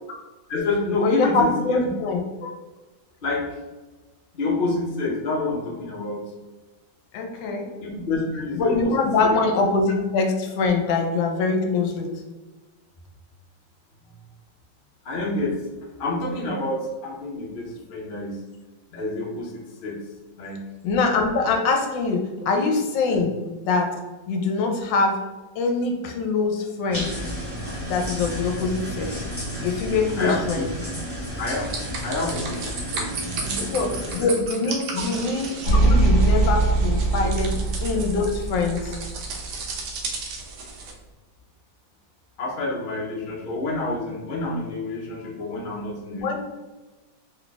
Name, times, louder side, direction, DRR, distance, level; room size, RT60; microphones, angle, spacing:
voice 1, 0.5-1.9 2.4-2.5 3.2-3.4 4.3-6.2 7.8-9.4 15.0-15.6 16.0-18.4 18.9-20.0 20.3-20.7 23.2-23.3 30.2-30.7 31.4-31.7 32.0-33.8 34.2-34.3 34.7-34.8 37.4-37.5 42.4-46.4, left 2 dB, 60° left, -2 dB, 0.5 m, -28 dB
voice 2, 1.0-2.2 7.1-7.7 8.5-12.1 20.8-23.4 23.7-24.0 24.3-25.2 25.6-27.1 27.8-29.2 29.6-30.7 33.6-39.0 46.1-46.4, left 3 dB, 75° left, 3 dB, 1.3 m, -23 dB
sound 1, 26.9-34.2, equal, 10° left, 0.9 m, -32 dB
sound 2, 31.6-40.9, right 4 dB, 70° right, 1.2 m, -34 dB
sound 3, 35.6-39.9, right 2 dB, 40° right, 1.0 m, -21 dB
3.3 x 2.3 x 3.9 m, 1.2 s
omnidirectional pair, 2.0 m